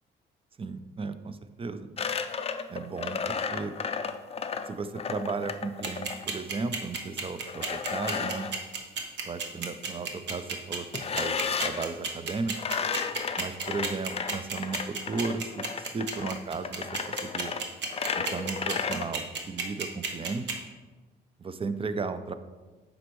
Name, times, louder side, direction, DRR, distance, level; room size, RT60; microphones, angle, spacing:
voice 1, 0.6-1.9 2.7-3.7 4.7-8.5 9.2-10.8 11.1-12.5 13.4-17.5 18.2-20.5 21.4-22.3, right 4 dB, 30° right, 11 dB, 0.5 m, -35 dB
sound 1, 2.0-6.3 7.5-8.6 10.9-11.9 12.5-19.0, left 6 dB, 30° left, 0.4 m, -33 dB
sound 2, 5.8-20.5, right 5 dB, 65° right, 1.0 m, -32 dB
7.7 x 5.2 x 3.1 m, 1.3 s
cardioid pair, 90°, 20 cm